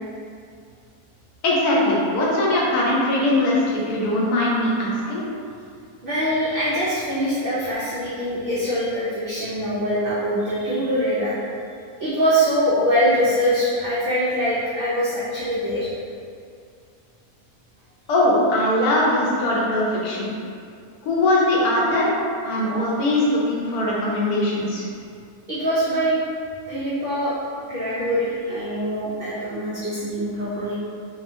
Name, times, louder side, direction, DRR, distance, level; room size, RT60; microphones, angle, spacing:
voice 1, 1.4-5.2 18.1-20.3 21.0-22.1 22.4-24.9, left 1 dB, 90° left, -5 dB, 1.2 m, -21 dB
voice 2, 6.0-11.4 12.0-15.9 25.5-26.2 26.7-27.3 27.7-30.7, equal, 90° right, -9 dB, 0.5 m, -23 dB
2.7 x 2.4 x 2.5 m, 2.3 s
omnidirectional pair, 1.6 m